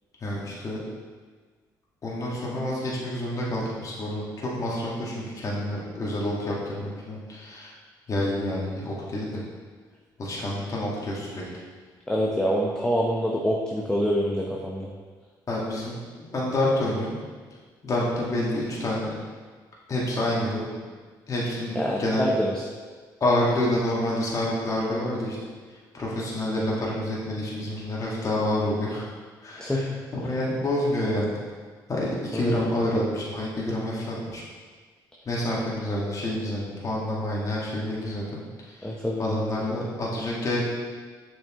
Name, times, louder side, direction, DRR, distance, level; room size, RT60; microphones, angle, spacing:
voice 1, 0.2-0.8 2.0-7.7 8.1-9.4 10.2-11.4 15.5-15.9 16.3-17.2 17.8-19.1 19.9-20.7 21.3-22.3 23.2-25.4 25.9-29.1 29.4-31.3 31.9-34.4 35.2-38.4 38.7-38.9 39.2-40.6, left 1 dB, 40° left, -5 dB, 1.8 m, -28 dB
voice 2, 12.1-14.9 21.7-22.6 29.6-30.0 32.3-32.7 38.8-39.2, equal, 10° left, -2 dB, 0.8 m, -26 dB
7.1 x 5.3 x 3.0 m, 1.5 s
supercardioid pair, 75°, 8 cm